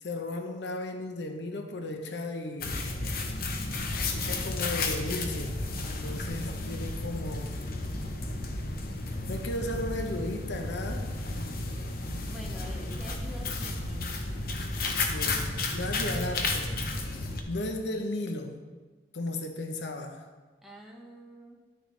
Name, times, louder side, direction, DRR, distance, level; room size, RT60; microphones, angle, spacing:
voice 1, 0.0-2.9 4.1-5.6 6.0-7.5 9.3-11.1 15.1-15.5 15.7-16.7 17.5-18.5 19.1-20.3, left 2 dB, 85° left, 5 dB, 0.8 m, -35 dB
sound 1, 2.6-17.4, left 2 dB, 55° left, 0.8 m, -32 dB
voice 2, 12.2-14.2 20.6-21.6, equal, ahead, -2 dB, 1.1 m, -46 dB
11.0 x 6.5 x 3.2 m, 1.3 s
head